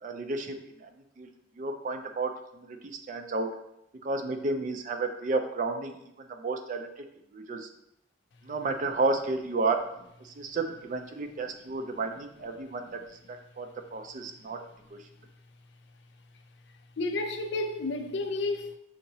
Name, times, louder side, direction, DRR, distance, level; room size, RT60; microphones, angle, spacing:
voice 1, 0.0-0.9 1.2-3.5 4.0-6.9 7.3-7.7 8.4-9.8 10.2-14.6 14.9-15.0, right 3 dB, 40° right, 0.4 m, -32 dB
voice 2, 17.0-18.8, left 2 dB, 60° left, 0.4 m, -31 dB
6.5 x 2.8 x 2.7 m
head